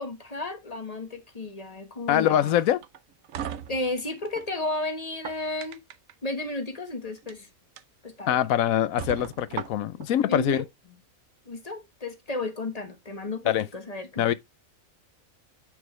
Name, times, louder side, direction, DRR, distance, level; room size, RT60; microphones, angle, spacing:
voice 1, 0.0-2.6 3.7-5.8 6.2-7.5 8.0-8.4 10.3-10.6 11.5-14.3, left 2 dB, 30° left, 1.4 m, -33 dB
voice 2, 2.1-2.8 8.3-10.6 13.5-13.7 14.2-14.3, left 11 dB, 80° left, 1.1 m, -23 dB
sound 1, 2.8-4.5 5.0-6.1 7.1-7.3 7.8-7.9 8.4-8.5 9.0-10.1, right 9 dB, 70° right, 1.1 m, -37 dB
9.4 x 5.2 x 3.2 m
omnidirectional pair, 1.5 m